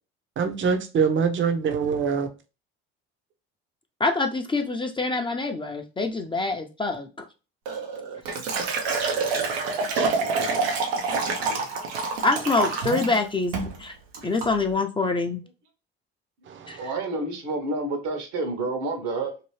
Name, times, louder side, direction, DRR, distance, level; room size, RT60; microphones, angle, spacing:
voice 1, 0.4-2.3 8.9-10.7 16.5-16.8, right 6 dB, 40° right, 0.7 m, -26 dB
voice 2, 4.0-7.1 12.2-13.9 14.2-15.4 16.7-16.8, left 3 dB, 15° left, 0.5 m, -25 dB
Liquid, 7.7-13.2 13.5-13.8 14.1-14.5, right 4 dB, 90° right, 0.8 m, -27 dB
voice 3, 11.2-11.8 16.8-19.3, right 2 dB, 70° right, 1.1 m, -30 dB
2.9 x 2.6 x 3.1 m
hypercardioid pair, 70°, 30 cm